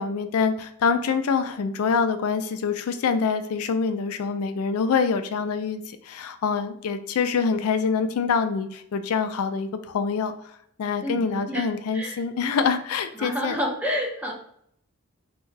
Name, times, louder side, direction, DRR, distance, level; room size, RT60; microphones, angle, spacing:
voice 1, 0.0-10.3 10.8-13.6, left 5 dB, 85° left, 8 dB, 0.4 m, -25 dB
voice 2, 11.0-11.7 11.9-12.2 13.2-14.3, equal, 5° right, -1 dB, 0.6 m, -29 dB
3.4 x 2.2 x 3.2 m, 0.69 s
head